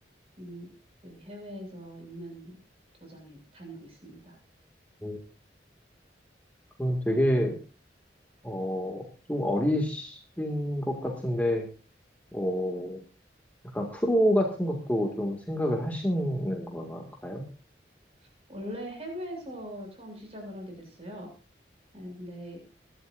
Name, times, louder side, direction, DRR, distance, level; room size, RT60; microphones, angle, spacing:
voice 1, 0.4-0.7 1.0-2.6 3.0-4.4 18.5-21.3 21.9-22.6, equal, 35° right, 2 dB, 7.1 m, -41 dB
voice 2, 6.8-7.6 8.4-11.7 12.3-13.0 13.7-17.4, equal, 10° left, 1 dB, 2.0 m, -28 dB
22.5 x 12.5 x 2.6 m, 0.34 s
head